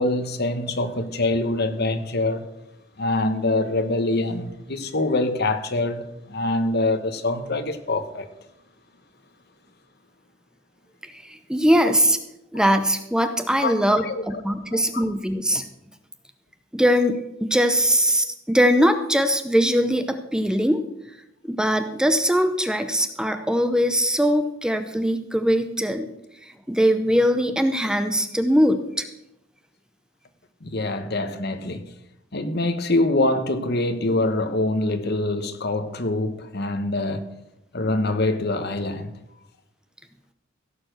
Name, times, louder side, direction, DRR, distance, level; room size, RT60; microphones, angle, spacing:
voice 1, 0.0-2.4 3.0-8.3 13.6-13.7 14.0-14.2 14.7-14.8 30.6-31.8 32.3-37.3 37.7-39.1, left 2 dB, 55° left, 1.2 m, -24 dB
voice 2, 11.0-12.2 12.5-15.6 16.7-20.8 21.4-26.1 26.4-29.1, equal, 5° right, 0.7 m, -21 dB
16.5 x 6.8 x 6.4 m
head